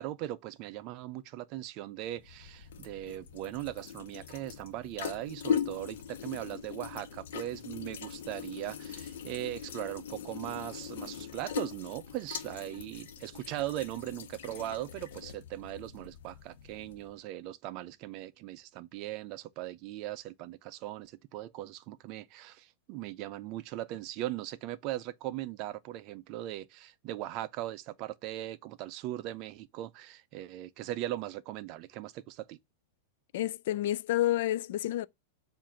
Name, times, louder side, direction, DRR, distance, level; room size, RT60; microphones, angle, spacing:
voice 1, 0.0-32.6, right 14 dB, 30° right, 0.4 m, -39 dB
sound 1, 2.1-17.1, left 8 dB, 65° left, 1.2 m, -40 dB
voice 2, 33.3-35.1, left 13 dB, 50° left, 0.3 m, -29 dB
7.5 x 2.6 x 5.6 m
supercardioid pair, 175°, 0 cm